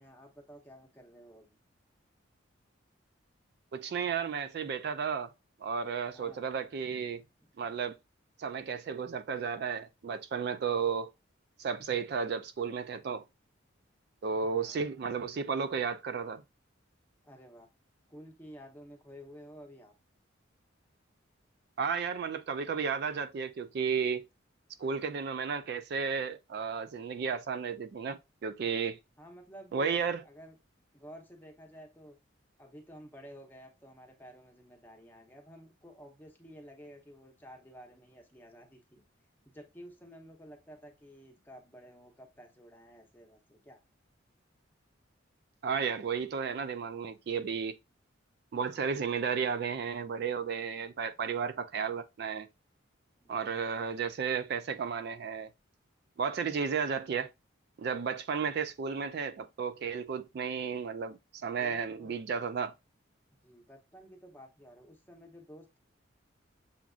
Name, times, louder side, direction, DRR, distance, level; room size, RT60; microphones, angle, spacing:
voice 1, 0.0-1.6 6.1-6.4 14.4-14.9 17.2-17.7 18.1-19.9 29.2-30.5 30.9-32.2 32.6-39.0 39.5-43.8 53.2-53.4 61.6-62.2 63.4-65.8, equal, 10° left, 0.7 m, -52 dB
voice 2, 3.7-5.3 5.6-7.2 7.6-8.0 8.4-11.1 11.6-13.2 14.2-16.4 21.8-24.2 24.8-29.0 29.7-30.2 45.6-47.8 48.5-52.5 53.3-55.5 56.2-57.3 57.8-62.7, right 6 dB, 55° right, 0.3 m, -33 dB
7.1 x 2.5 x 2.4 m
head